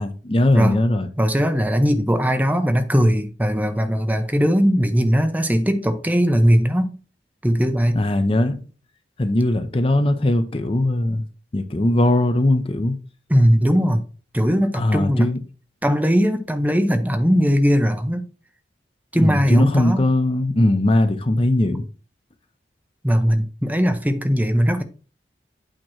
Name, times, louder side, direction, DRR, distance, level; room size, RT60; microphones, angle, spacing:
voice 1, 0.0-1.1 7.9-8.7 9.2-11.2 11.5-13.0 14.7-15.4 17.2-17.4 19.2-21.8, left 1 dB, 30° left, 0.6 m, -20 dB
voice 2, 1.2-6.9 7.4-8.0 13.3-14.0 14.3-15.3 15.8-18.2 19.1-20.0 23.0-24.8, equal, 10° right, 0.7 m, -19 dB
8.8 x 3.0 x 6.1 m
head